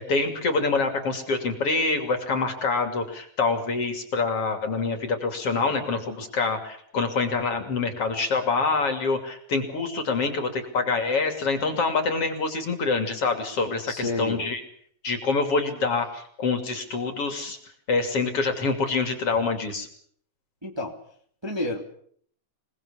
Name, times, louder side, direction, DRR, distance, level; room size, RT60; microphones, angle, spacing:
voice 1, 0.0-14.6 15.0-17.6 17.9-19.9, left 4 dB, 50° left, 5 dB, 3.8 m, -26 dB
voice 2, 13.9-14.5 20.6-20.9 21.4-21.8, left 1 dB, 10° right, 1 dB, 2.4 m, -30 dB
26.5 x 19.5 x 7.2 m, 0.62 s
omnidirectional pair, 3.6 m